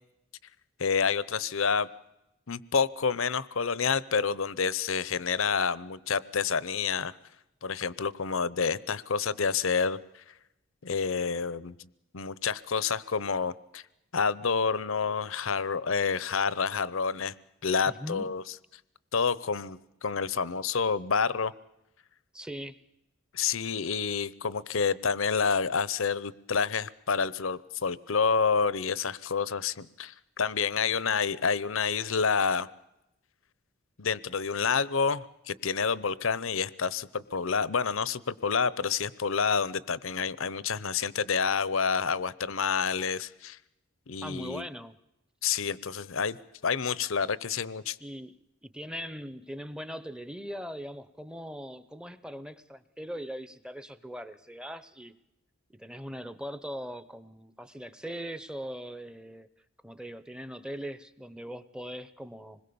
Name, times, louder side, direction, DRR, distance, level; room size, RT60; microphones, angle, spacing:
voice 1, 0.8-1.9 2.5-7.1 7.6-10.2 10.8-11.9 12.1-13.8 14.1-17.3 17.6-18.4 19.1-21.5 23.3-32.7 34.0-43.6 44.1-44.7 45.4-46.4 46.6-48.0, left 5 dB, 70° left, 19 dB, 0.8 m, -28 dB
voice 2, 17.9-18.3 22.3-22.8 44.2-45.0 48.0-48.3 48.6-55.1 55.7-59.5 59.8-62.6, equal, 5° right, 14 dB, 0.8 m, -40 dB
26.0 x 21.0 x 7.0 m, 0.89 s
head